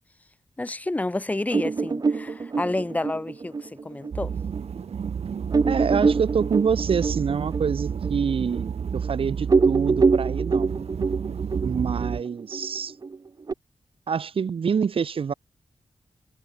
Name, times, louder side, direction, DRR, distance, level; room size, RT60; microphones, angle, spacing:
voice 1, 0.6-4.3, left 2 dB, 15° left, 1.7 m, -29 dB
sound 1, 1.5-4.6 5.0-5.1 5.5-9.1 9.4-13.5, right 4 dB, 40° right, 1.3 m, -25 dB
sound 2, 4.1-12.2, right 7 dB, 85° right, 2.5 m, -31 dB
voice 2, 5.7-10.7 11.6-12.9 14.1-15.3, right 6 dB, 60° right, 1.2 m, -26 dB
wide cardioid pair, 160°, 10 cm